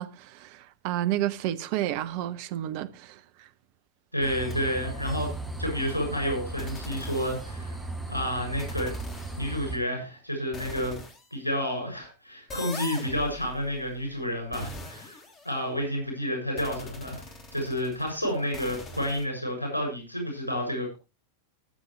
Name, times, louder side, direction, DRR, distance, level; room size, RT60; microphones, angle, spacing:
voice 1, 0.0-3.5, right 13 dB, 45° right, 0.9 m, -31 dB
voice 2, 4.1-5.3 5.6-7.8 8.1-8.9 9.4-11.0 11.3-17.2 17.5-20.9, equal, 85° left, 7.1 m, -30 dB
sound 1, 4.2-9.8, right 2 dB, ahead, 4.7 m, -37 dB
sound 2, 4.4-4.5 5.0-5.4 6.6-7.8 8.6-9.4 10.5-11.3 12.5-15.9 16.6-19.2, left 2 dB, 25° left, 3.3 m, -43 dB
20.0 x 7.9 x 3.3 m
figure-of-eight pair, 90°, 0 cm